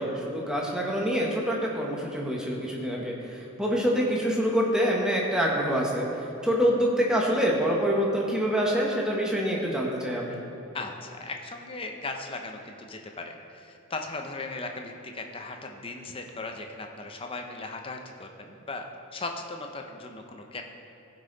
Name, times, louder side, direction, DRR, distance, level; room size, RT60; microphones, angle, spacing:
voice 1, 0.0-10.4, equal, 5° right, -3 dB, 1.2 m, -26 dB
voice 2, 10.7-18.9 19.1-20.6, left 3 dB, 25° left, 3 dB, 0.7 m, -37 dB
16.5 x 5.6 x 4.0 m, 2.8 s
head